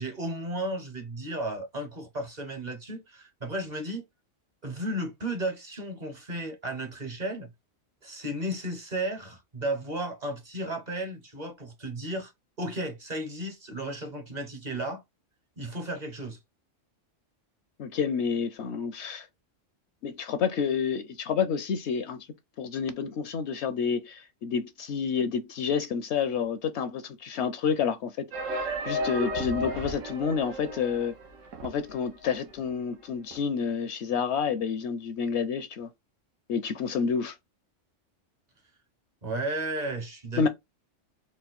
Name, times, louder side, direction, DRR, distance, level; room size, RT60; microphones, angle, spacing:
voice 1, 0.0-4.0 4.6-7.5 8.0-12.3 12.6-15.0 15.6-16.4 39.2-40.5, right 1 dB, 40° right, 0.8 m, -34 dB
voice 2, 17.8-19.3 20.0-22.3 22.6-31.1 31.6-35.9 36.5-37.4 40.4-40.5, left 6 dB, 70° left, 0.8 m, -29 dB
sound 1, 28.3-32.0 32.3-32.4 32.7-32.8 33.3-33.4, equal, 80° right, 1.2 m, -33 dB
4.2 x 2.2 x 4.0 m
omnidirectional pair, 1.3 m